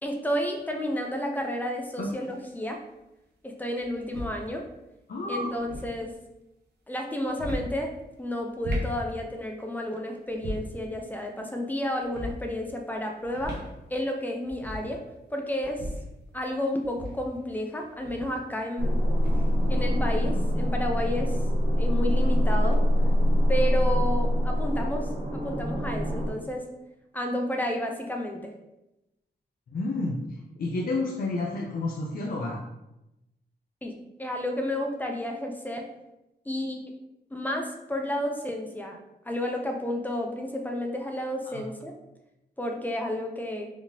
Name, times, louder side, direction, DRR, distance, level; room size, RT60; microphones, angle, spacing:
voice 1, 0.0-2.8 3.4-4.6 5.3-6.1 6.9-7.9 8.2-13.6 13.9-15.0 15.3-15.9 16.3-19.0 19.7-21.4 21.8-22.8 23.5-26.7 27.1-28.5 33.8-33.9 34.2-35.9 36.5-36.8 37.3-39.0 39.2-41.9 42.6-43.7, left 1 dB, 10° left, 2 dB, 0.5 m, -31 dB
sound 1, 2.1-2.6 3.8-4.4 5.5-6.0 7.2-7.8 8.5-9.0 10.3-10.8 12.0-12.4 13.2-13.7 14.1-14.2 14.4-14.9 15.6-16.1 16.8-18.4 19.1-19.6, equal, 65° right, 1.0 m, -36 dB
voice 2, 5.1-5.5 29.7-30.2 30.6-32.6 41.5-41.6, left 2 dB, 55° left, -2 dB, 0.6 m, -30 dB
sound 2, 18.8-26.3, equal, 45° right, 1.4 m, -24 dB
4.8 x 3.6 x 2.7 m, 0.92 s
wide cardioid pair, 180°, 18 cm